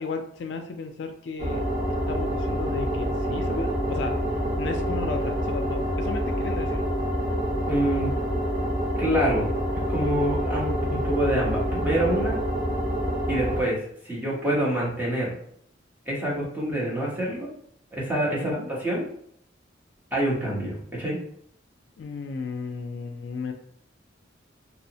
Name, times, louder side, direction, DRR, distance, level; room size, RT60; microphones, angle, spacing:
voice 1, 0.0-1.7 2.1-4.2 4.6-6.8 18.3-18.7 22.0-23.5, left 4 dB, 70° left, 5 dB, 0.3 m, -34 dB
sound 1, 1.4-13.6, equal, 45° right, 0.6 m, -27 dB
voice 2, 7.7-8.1 9.0-9.5 9.9-12.4 13.3-15.3 16.1-17.5 17.9-19.1 20.1-21.2, right 1 dB, 10° right, -5 dB, 0.8 m, -26 dB
2.8 x 2.0 x 2.7 m, 0.68 s
head